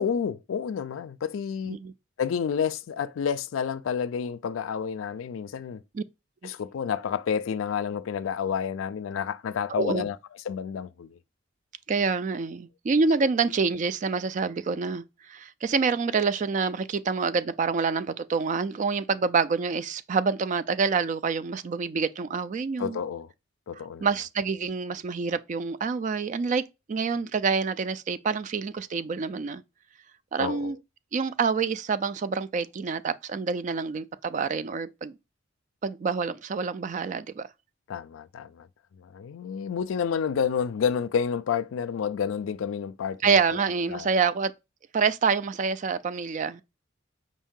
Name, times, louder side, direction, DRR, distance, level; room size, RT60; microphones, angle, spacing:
voice 1, 0.0-1.8 2.2-5.8 6.4-10.2 10.5-11.2 22.8-23.3 23.7-24.1 30.4-30.7 37.9-38.7 39.0-43.3 43.9-44.1, left 7 dB, 85° left, 0.4 m, -29 dB
voice 2, 9.7-10.1 11.9-23.0 23.7-26.6 26.9-29.6 30.3-30.8 31.1-35.2 35.8-37.5 43.2-44.5 44.9-46.6, right 5 dB, 40° right, 0.3 m, -27 dB
5.2 x 2.7 x 3.6 m
head